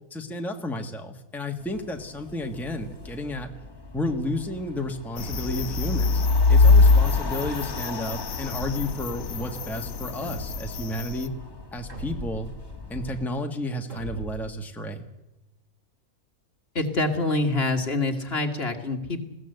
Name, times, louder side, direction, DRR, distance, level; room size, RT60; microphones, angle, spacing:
voice 1, 0.1-3.5 3.9-6.2 6.5-11.3 11.7-12.5 12.9-15.1, left 1 dB, ahead, 4 dB, 1.6 m, -32 dB
sound 1, 1.6-13.2, left 3 dB, 15° left, 1.4 m, -41 dB
sound 2, 5.2-11.2, left 3 dB, 70° left, 1.4 m, -22 dB
sound 3, 5.2-5.8 6.9-7.5 8.5-9.1 10.2-10.9 11.9-12.6 13.9-14.5, equal, 60° right, 3.1 m, -38 dB
voice 2, 16.8-19.2, left 2 dB, 45° left, 6 dB, 2.0 m, -26 dB
21.0 x 16.0 x 7.9 m, 0.97 s
omnidirectional pair, 1.5 m